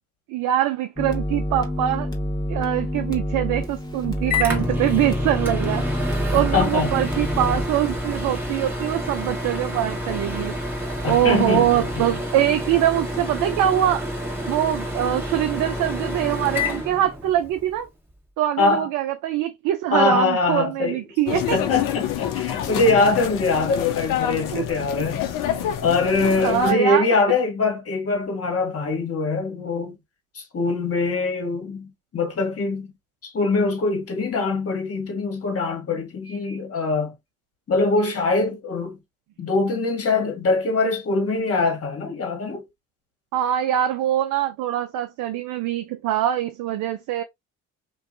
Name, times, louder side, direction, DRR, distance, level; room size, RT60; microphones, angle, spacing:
voice 1, 0.3-2.1 2.5-5.9 6.3-10.5 11.0-14.1 14.5-17.9 18.4-21.6 24.5-24.7 26.4-27.1 43.3-47.2, right 12 dB, 65° right, 0.5 m, -23 dB
sound 1, 1.0-7.7, left 1 dB, 10° left, 1.0 m, -28 dB
Microwave oven, 3.6-17.6, left 1 dB, 5° right, 1.2 m, -28 dB
voice 2, 6.3-6.9 11.0-12.1 18.6-18.9 19.9-21.0 21.3-25.3 25.8-30.0 30.3-32.9 33.2-37.1 37.7-39.0 39.4-42.7, left 3 dB, 45° left, 1.3 m, -23 dB
sound 2, 21.3-26.7, left 10 dB, 70° left, 0.6 m, -27 dB
2.6 x 2.3 x 2.6 m
hypercardioid pair, 55°, 34 cm